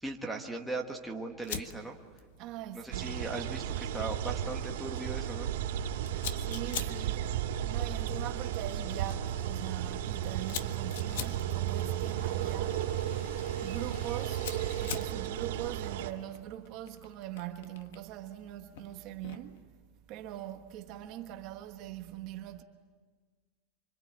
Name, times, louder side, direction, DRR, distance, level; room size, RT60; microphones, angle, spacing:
voice 1, 0.0-2.0 2.7-5.5, right 2 dB, ahead, 1.4 m, -38 dB
Fire, 1.4-19.6, left 8 dB, 75° left, 1.6 m, -47 dB
voice 2, 2.4-3.2 6.1-7.3 7.7-12.9 13.6-14.5 14.8-19.6 20.1-22.6, right 13 dB, 40° right, 1.3 m, -42 dB
sound 1, 2.9-16.1, right 10 dB, 80° right, 2.6 m, -34 dB
sound 2, 7.7-15.0, left 2 dB, 50° left, 5.3 m, -55 dB
25.5 x 25.0 x 8.7 m
supercardioid pair, 175°, 0 cm